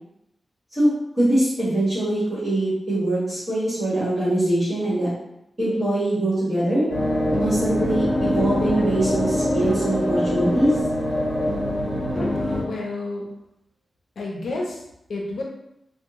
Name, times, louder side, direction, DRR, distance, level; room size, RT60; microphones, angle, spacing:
voice 1, 0.7-5.1 5.6-6.9 7.4-10.7, right 1 dB, 20° right, -11 dB, 1.4 m, -22 dB
sound 1, 6.9-12.6, left 1 dB, 35° left, 0.9 m, -23 dB
voice 2, 12.6-13.3 14.2-14.8 15.1-15.4, left 2 dB, 70° left, -1 dB, 0.5 m, -30 dB
3.4 x 2.1 x 3.0 m, 0.83 s
wide cardioid pair, 175°, 0 cm